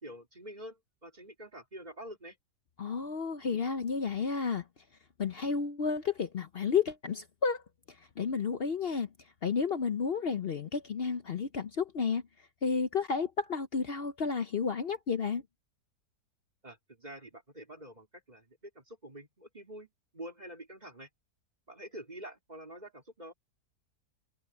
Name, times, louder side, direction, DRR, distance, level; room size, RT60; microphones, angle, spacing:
voice 1, 0.0-2.4 16.6-21.1 21.7-23.3, right 1 dB, 25° right, 3.5 m, -47 dB
voice 2, 2.8-4.6 5.2-7.6 7.9-9.1 9.4-12.2 12.6-15.4, left 5 dB, 50° left, 0.7 m, -31 dB
omnidirectional pair, 1.7 m